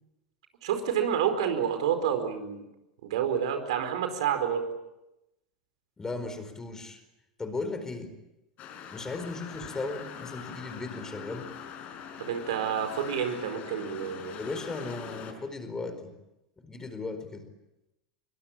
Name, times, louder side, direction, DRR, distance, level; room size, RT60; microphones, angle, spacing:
voice 1, 0.6-2.7 3.0-4.6 12.2-14.4, right 8 dB, 60° right, 7 dB, 4.7 m, -29 dB
voice 2, 6.0-7.0 7.4-8.1 8.9-11.5 14.4-16.1 16.6-17.5, left 3 dB, 15° left, 9 dB, 4.5 m, -36 dB
sound 1, 8.6-15.3, left 8 dB, 40° left, 5.3 m, -43 dB
26.0 x 24.0 x 8.8 m, 0.92 s
figure-of-eight pair, 85°, 4 cm